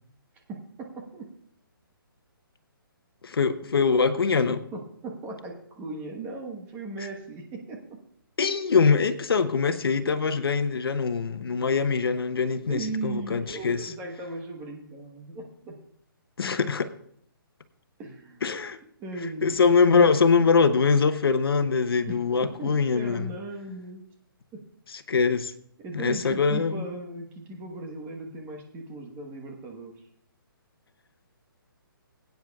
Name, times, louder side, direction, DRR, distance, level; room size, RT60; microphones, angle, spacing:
voice 1, 0.5-1.3 4.3-8.0 12.7-15.7 18.0-18.4 19.0-19.6 22.0-24.0 24.5-24.6 25.8-29.9, right 3 dB, 15° right, 1.3 m, -38 dB
voice 2, 3.2-4.6 8.4-13.9 16.4-16.9 18.4-18.8 19.4-23.3 25.1-25.5 25.9-26.9, left 5 dB, 80° left, 0.9 m, -23 dB
21.5 x 9.1 x 2.4 m
hypercardioid pair, 160°, 12 cm